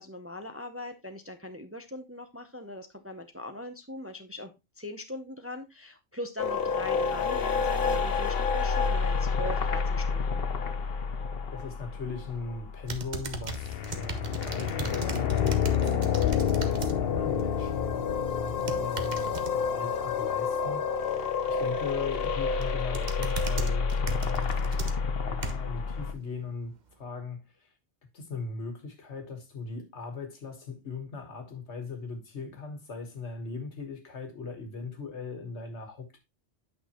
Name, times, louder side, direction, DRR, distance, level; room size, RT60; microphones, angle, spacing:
voice 1, 0.0-10.4, left 1 dB, 15° right, 0.6 m, -40 dB
sound 1, 6.4-13.1 13.5-26.1, left 6 dB, 60° left, 1.0 m, -29 dB
voice 2, 11.5-24.8 25.2-27.7 28.1-36.2, left 4 dB, 75° left, 1.8 m, -39 dB
sound 2, 12.9-17.0 17.3-17.7 18.5-19.5 21.9-22.3 22.6-25.8 26.3-26.4, right 5 dB, 45° right, 0.9 m, -38 dB
8.8 x 5.9 x 2.9 m
omnidirectional pair, 1.2 m